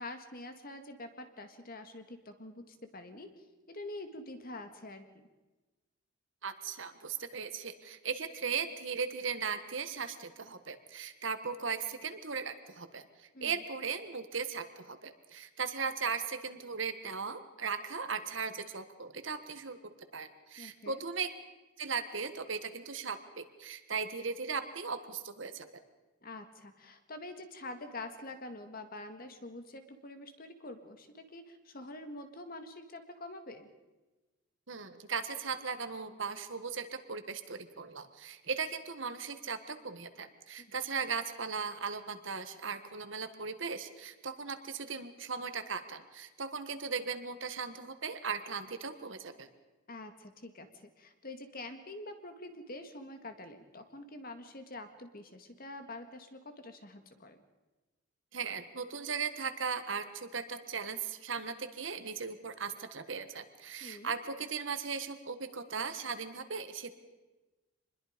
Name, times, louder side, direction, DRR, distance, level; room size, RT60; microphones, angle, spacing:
voice 1, 0.0-3.3 3.7-5.1 13.3-13.6 20.6-21.0 26.2-33.7 40.6-40.8 49.9-57.4 63.8-64.1, left 2 dB, 45° left, 8 dB, 1.8 m, -46 dB
voice 2, 6.4-19.8 20.1-21.3 21.8-25.7 34.7-49.5 58.3-66.9, right 5 dB, 65° right, 9 dB, 1.5 m, -38 dB
25.5 x 21.0 x 5.2 m, 1.2 s
head